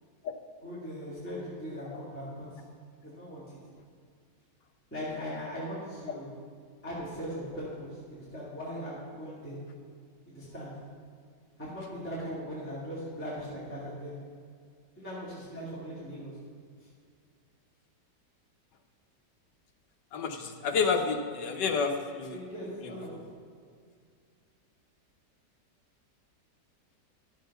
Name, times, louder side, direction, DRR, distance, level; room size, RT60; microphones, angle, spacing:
voice 1, 0.6-2.5 3.0-3.6 4.9-6.3 6.8-9.6 10.3-10.7 11.6-14.2 15.0-16.3 22.3-23.3, equal, 5° left, -10 dB, 2.5 m, -39 dB
voice 2, 20.1-22.4 22.8-22.9, left 5 dB, 75° left, 3 dB, 1.6 m, -30 dB
12.0 x 7.6 x 5.5 m, 2.2 s
omnidirectional pair, 1.9 m